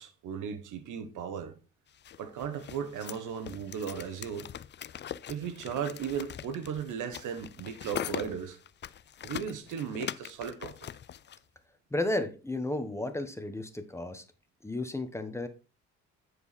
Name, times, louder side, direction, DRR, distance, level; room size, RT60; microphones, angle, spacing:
voice 1, 0.0-1.6 2.2-4.5 5.3-8.6 9.2-10.7, right 7 dB, 80° right, 1.3 m, -36 dB
sound 1, 2.0-11.4, left 9 dB, 35° left, 0.4 m, -42 dB
voice 2, 11.9-14.2 14.6-15.5, left 2 dB, 10° left, 1.2 m, -33 dB
10.0 x 4.7 x 4.2 m
cardioid pair, 90°, 30 cm